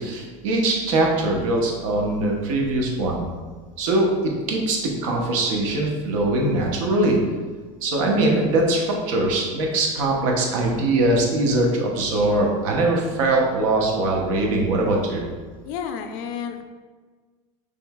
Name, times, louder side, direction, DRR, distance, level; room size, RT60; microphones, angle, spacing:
voice 1, 0.0-3.2 3.8-7.2 7.8-15.2, right 2 dB, 85° right, -1 dB, 0.9 m, -22 dB
voice 2, 15.6-16.6, left 7 dB, 65° left, 7 dB, 0.4 m, -31 dB
5.3 x 3.2 x 2.3 m, 1.4 s
supercardioid pair, 140°, 16 cm